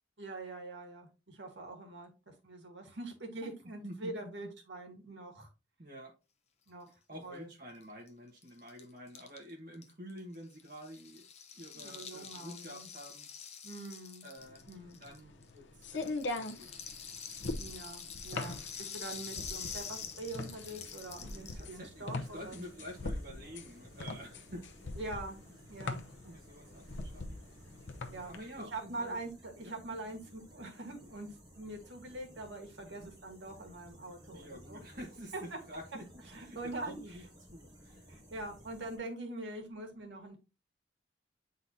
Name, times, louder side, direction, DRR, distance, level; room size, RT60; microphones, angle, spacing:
voice 1, 0.2-5.5 6.7-6.9 7.2-7.5 11.7-12.9 13.6-14.3 14.7-15.0 17.5-22.6 25.0-25.4 25.7-26.0 28.1-31.3 31.5-34.8 35.3-35.6 36.3-37.0 38.1-40.4, right 2 dB, 75° right, 1.8 m, -44 dB
voice 2, 5.8-6.1 7.1-11.3 11.6-13.3 14.2-14.6 15.0-16.7 21.3-24.7 26.1-27.4 28.3-29.2 29.6-29.7 32.8-33.1 34.3-37.2 37.5-38.1, equal, 50° right, 1.3 m, -49 dB
Rattle (instrument), 7.8-7.9 8.1-8.2 8.4-15.5 15.8-21.7, left 7 dB, 35° left, 0.8 m, -46 dB
sound 1, 14.5-28.4, left 2 dB, 80° left, 0.8 m, -41 dB
sound 2, 19.3-39.0, equal, 20° right, 3.7 m, -57 dB
9.1 x 3.9 x 2.7 m
head